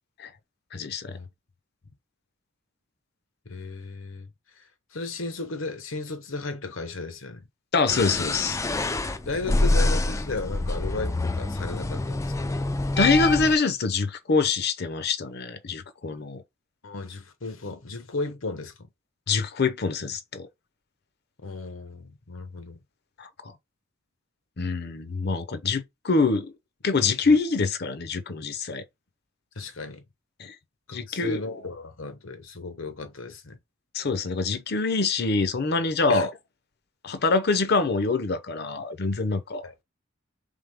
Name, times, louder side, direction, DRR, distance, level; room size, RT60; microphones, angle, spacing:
voice 1, 0.7-1.2 7.7-8.6 13.0-16.4 19.3-20.5 23.2-23.3 24.6-26.5 26.8-28.8 30.4-30.5 30.9-31.6 33.9-36.3 37.0-39.6, left 4 dB, 55° left, 0.7 m, -25 dB
voice 2, 3.5-4.3 4.9-7.4 9.3-12.3 16.8-18.7 21.4-22.8 27.3-27.4 29.6-30.0 30.9-33.6 36.1-36.3 39.6-39.7, left 3 dB, 75° left, 1.1 m, -35 dB
sound 1, 7.9-13.6, left 2 dB, 15° left, 0.3 m, -26 dB
3.6 x 3.6 x 3.5 m
head